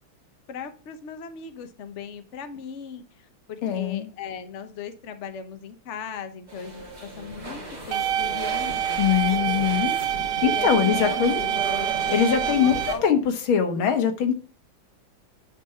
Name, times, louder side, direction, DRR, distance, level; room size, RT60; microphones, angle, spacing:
voice 1, 0.5-9.4 10.5-11.4 12.4-13.0 13.7-13.9, left 6 dB, 45° left, 8 dB, 1.0 m, -38 dB
voice 2, 3.6-4.1 9.0-9.9 10.4-11.4 12.1-13.2 13.5-14.3, left 8 dB, 80° left, 6 dB, 2.1 m, -22 dB
sound 1, 6.5-13.0, right 2 dB, 20° right, 1.8 m, -35 dB
sound 2, 7.9-12.9, right 10 dB, 65° right, 0.8 m, -26 dB
9.6 x 4.6 x 5.7 m, 0.38 s
omnidirectional pair, 2.2 m